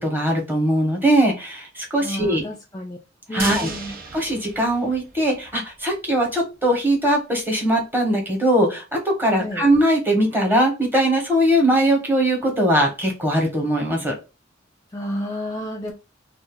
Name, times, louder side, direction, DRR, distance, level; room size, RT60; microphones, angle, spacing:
voice 1, 0.0-2.4 3.3-3.7 4.1-14.1, right 1 dB, 10° right, 1.1 m, -20 dB
voice 2, 2.0-3.0 3.3-3.9 9.3-9.7 14.9-15.9, equal, 20° left, 0.4 m, -31 dB
sound 1, 3.4-5.5 5.9-6.0 6.3-6.4, right 4 dB, 50° right, 0.7 m, -35 dB
2.6 x 2.4 x 3.7 m
head